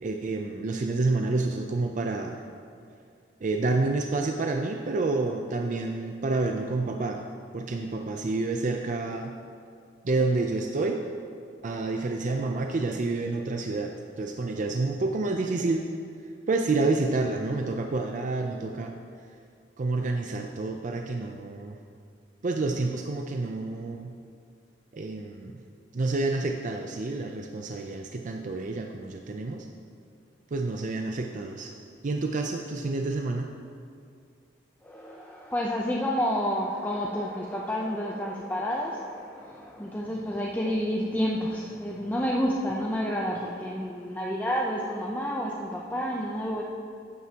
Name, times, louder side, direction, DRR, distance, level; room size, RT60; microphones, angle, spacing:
voice 1, 0.0-2.4 3.4-7.2 7.5-9.3 10.0-11.0 11.6-15.9 16.5-18.9 19.8-21.8 22.4-24.1 24.9-25.6 25.9-29.7 30.5-31.7 32.0-33.5, right 3 dB, 45° right, 3 dB, 0.5 m, -29 dB
voice 2, 34.8-46.6, equal, 10° left, -3 dB, 0.6 m, -29 dB
13.0 x 9.4 x 2.9 m, 2.3 s
head